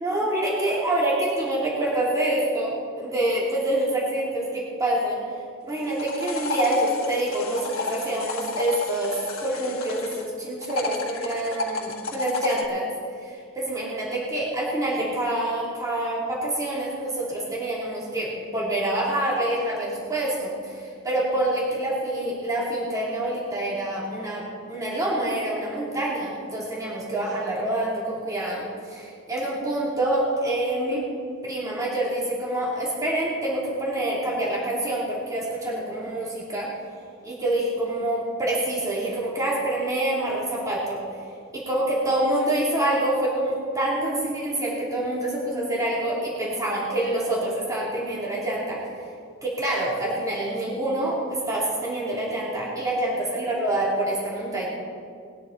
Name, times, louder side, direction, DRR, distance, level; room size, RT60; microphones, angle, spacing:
voice 1, 0.0-5.2 5.6-12.9 13.2-31.0 31.4-36.7 37.2-41.0 41.5-48.8 49.4-54.7, right 1 dB, 15° right, -6 dB, 2.8 m, -26 dB
sound 1, 5.7-10.3 10.6-12.7, left 3 dB, 85° left, 1.7 m, -32 dB
20.5 x 9.0 x 4.4 m, 2.3 s
head